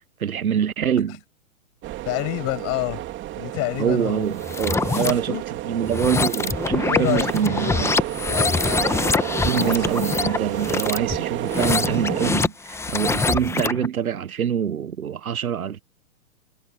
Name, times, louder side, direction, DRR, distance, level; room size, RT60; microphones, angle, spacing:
voice 1, 0.2-1.2 3.8-5.4 5.6-7.9 8.7-8.9 9.2-15.8, right 8 dB, 80° right, 1.3 m, -25 dB
sound 1, 1.8-12.3, right 15 dB, 25° right, 2.8 m, -30 dB
voice 2, 2.0-3.0 3.4-4.3 4.9-5.4 6.9-7.9 8.2-8.9 9.6-10.0, left 24 dB, 35° left, 7.0 m, -28 dB
sound 2, 4.4-5.1 5.8-13.9, left 4 dB, 5° left, 1.2 m, -24 dB
hypercardioid pair, 120°, 42 cm